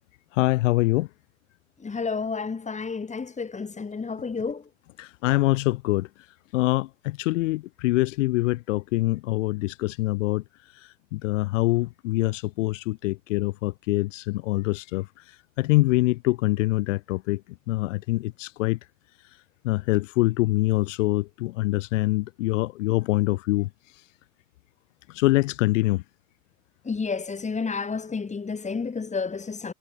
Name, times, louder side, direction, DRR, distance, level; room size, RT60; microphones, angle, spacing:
voice 1, 0.3-1.1 5.0-6.1 6.5-10.4 10.7-15.1 15.6-17.4 17.7-18.8 19.6-23.7 25.1-26.0, left 19 dB, 60° left, 2.9 m, -24 dB
voice 2, 1.8-4.6 26.8-29.7, left 5 dB, 15° left, 6.2 m, -30 dB
figure-of-eight pair, 80°, 43 cm